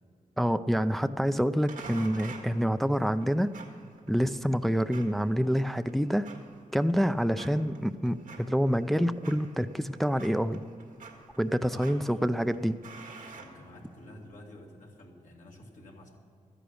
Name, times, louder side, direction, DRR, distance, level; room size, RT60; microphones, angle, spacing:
voice 1, 0.4-3.5 4.1-6.3 6.7-10.6 11.4-12.8, equal, ahead, 10 dB, 0.4 m, -27 dB
sound 1, 1.7-14.2, right 4 dB, 90° right, 1.8 m, -50 dB
voice 2, 11.7-12.1 12.6-12.7 13.3-16.2, left 1 dB, 70° left, -1 dB, 2.3 m, -49 dB
13.0 x 10.0 x 6.5 m, 2.4 s
cardioid pair, 75°, 14 cm